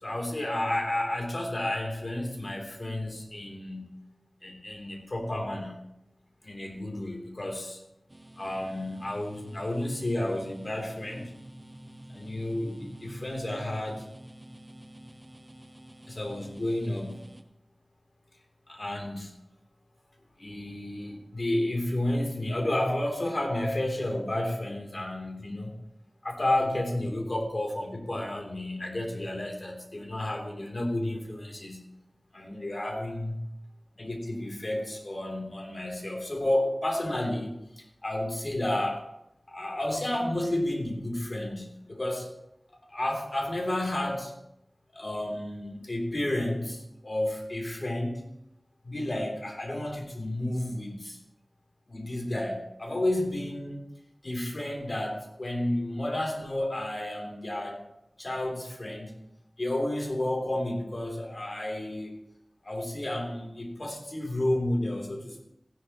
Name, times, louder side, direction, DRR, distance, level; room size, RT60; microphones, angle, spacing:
voice 1, 0.0-3.9 4.4-5.8 6.4-7.8 8.4-11.3 12.1-14.0 16.1-17.2 18.7-19.3 20.4-25.7 26.2-31.8 32.3-33.4 34.0-39.0 39.5-42.3 42.7-44.3 44.9-48.2 48.8-51.2 51.9-53.8 54.2-57.8 58.2-59.1 59.6-62.1 62.6-65.4, left 1 dB, 50° left, 1 dB, 3.1 m, -31 dB
sound 1, 8.1-17.4, right 1 dB, 30° right, 1.0 m, -48 dB
15.5 x 11.0 x 3.0 m, 0.82 s
wide cardioid pair, 50°, 0 cm